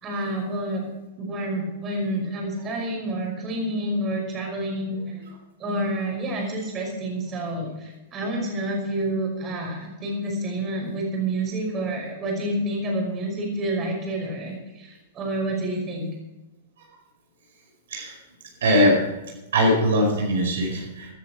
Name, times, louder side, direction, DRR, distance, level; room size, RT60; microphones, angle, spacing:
voice 1, 0.0-0.8 1.2-5.2 5.6-16.1, right 1 dB, 30° right, 0 dB, 5.6 m, -28 dB
voice 2, 18.6-19.0 19.5-21.1, equal, 70° right, -1 dB, 5.0 m, -20 dB
16.5 x 10.5 x 5.0 m, 1.0 s
figure-of-eight pair, 105°, 0 cm